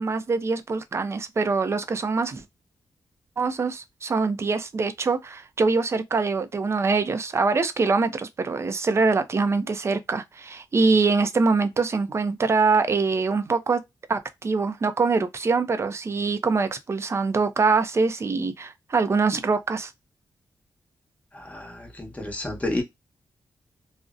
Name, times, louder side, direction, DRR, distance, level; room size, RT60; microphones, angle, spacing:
voice 1, 0.0-2.4 3.4-13.8 14.1-19.9, right 4 dB, 35° right, 0.4 m, -24 dB
voice 2, 21.3-22.8, left 1 dB, 15° left, 1.0 m, -30 dB
2.5 x 2.0 x 2.4 m
wide cardioid pair, 105°, 8 cm